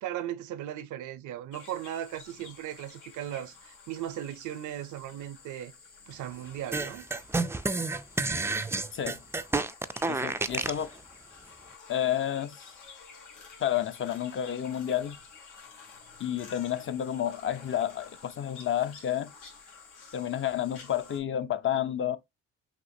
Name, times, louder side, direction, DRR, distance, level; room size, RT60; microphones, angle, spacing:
voice 1, 0.0-5.7 6.1-7.1, right 11 dB, 75° right, 0.6 m, -37 dB
sound 1, 1.5-21.2, left 5 dB, 90° left, 1.8 m, -51 dB
sound 2, 6.7-10.8, right 3 dB, 10° right, 0.3 m, -30 dB
voice 2, 10.1-10.9 11.9-12.6 13.6-15.2 16.2-19.3 20.1-22.2, left 10 dB, 40° left, 0.6 m, -30 dB
6.0 x 2.8 x 2.7 m
cardioid pair, 90°, 30 cm